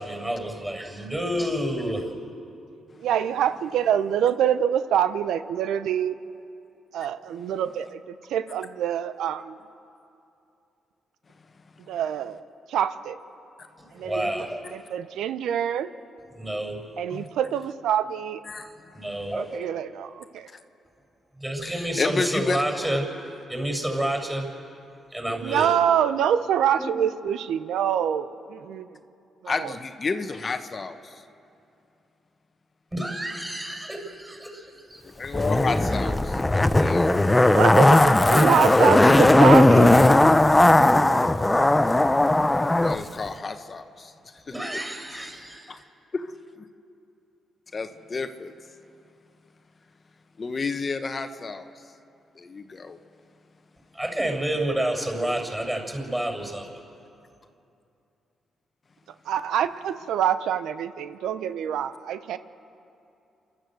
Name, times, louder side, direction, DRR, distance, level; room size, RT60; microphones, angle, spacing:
voice 1, 0.0-2.1 14.0-14.6 16.3-16.8 18.5-19.7 21.4-23.0 23.5-24.5 25.1-25.7 26.8-26.9 32.9-35.0 44.5-45.7 53.9-56.7, right 1 dB, 15° right, 2 dB, 6.9 m, -29 dB
voice 2, 3.0-6.2 6.9-8.0 8.3-9.6 11.9-12.4 12.7-13.2 13.9-14.3 14.7-15.9 17.0-18.4 19.3-20.5 25.4-28.9 29.4-29.7 37.4-40.0 59.3-62.4, right 9 dB, 80° right, 12 dB, 0.8 m, -25 dB
voice 3, 21.6-22.7 29.4-31.2 35.2-37.2 42.7-44.8 45.1-45.3 45.7-45.8 46.1-46.3 46.6-46.7 47.7-48.6 50.4-51.7 52.3-53.0, left 4 dB, 45° left, 8 dB, 1.2 m, -31 dB
Zipper (clothing), 35.3-43.0 43.3-43.4, left 1 dB, 15° left, 0.8 m, -17 dB
28.0 x 12.5 x 7.9 m, 2.7 s
supercardioid pair, 55°, 0 cm